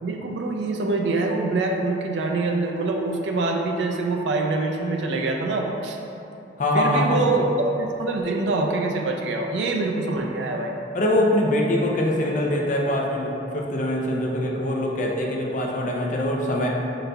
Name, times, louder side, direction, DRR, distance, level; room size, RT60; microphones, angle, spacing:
voice 1, 0.0-6.0 6.7-7.5 7.8-10.8, right 3 dB, 80° right, 2 dB, 0.4 m, -25 dB
voice 2, 6.6-7.2 10.9-16.7, left 1 dB, 45° left, -1 dB, 0.5 m, -23 dB
5.2 x 3.9 x 2.3 m, 2.9 s
head